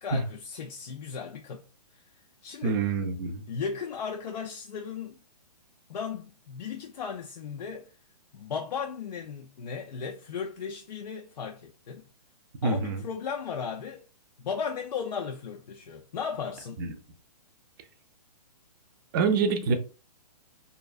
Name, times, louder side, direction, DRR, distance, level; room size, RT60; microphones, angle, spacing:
voice 1, 0.0-1.6 1.9-2.0 2.4-2.8 3.5-5.2 5.9-7.9 8.3-12.1 12.6-14.1 14.4-16.8, left 6 dB, 85° left, 0.4 m, -36 dB
voice 2, 2.6-3.4 12.6-13.0 16.8-16.9 19.1-19.8, right 4 dB, 35° right, 0.4 m, -26 dB
2.5 x 2.2 x 2.3 m
hypercardioid pair, 145°, 21 cm